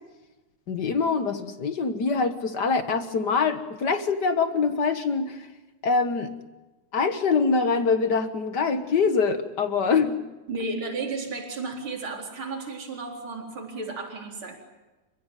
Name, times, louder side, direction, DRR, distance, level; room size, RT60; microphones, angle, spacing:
voice 1, 0.7-5.5 5.8-6.3 6.9-10.2, left 5 dB, 45° left, 9 dB, 1.4 m, -24 dB
voice 2, 10.5-14.6, right 3 dB, 40° right, 1 dB, 4.8 m, -33 dB
30.0 x 16.0 x 9.1 m, 1.1 s
omnidirectional pair, 3.5 m